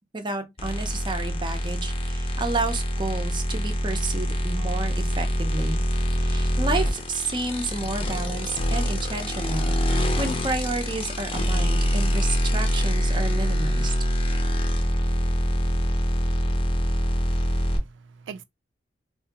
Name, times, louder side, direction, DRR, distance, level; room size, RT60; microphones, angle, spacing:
voice 1, 0.1-5.8 6.2-13.9, right 3 dB, 25° right, 0.7 m, -31 dB
sound 1, 0.6-17.8, equal, 30° left, 0.7 m, -25 dB
voice 2, 17.0-18.4, right 6 dB, 85° right, 0.3 m, -44 dB
2.8 x 2.7 x 3.4 m
head